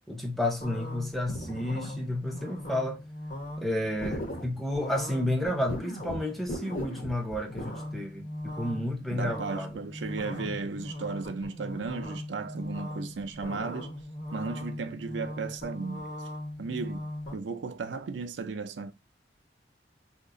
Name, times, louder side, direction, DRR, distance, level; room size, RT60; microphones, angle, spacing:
voice 1, 0.1-3.0 3.6-9.8, left 1 dB, ahead, 0.5 m, -31 dB
sound 1, 0.6-17.4, left 1 dB, 50° left, 0.9 m, -39 dB
voice 2, 9.0-13.9 14.3-16.1 16.6-18.9, right 4 dB, 85° right, 0.5 m, -35 dB
2.9 x 2.4 x 3.7 m
head